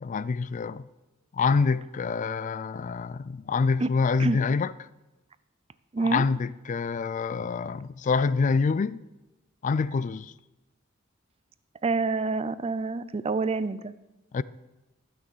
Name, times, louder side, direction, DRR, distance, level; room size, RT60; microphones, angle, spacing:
voice 1, 0.0-0.8 1.3-4.7 6.0-9.0 9.6-10.3 14.3-14.4, left 4 dB, 40° left, 0.3 m, -26 dB
voice 2, 5.9-6.2 7.4-7.5 11.8-13.9, right 3 dB, 30° right, 0.4 m, -27 dB
13.0 x 6.2 x 7.0 m
head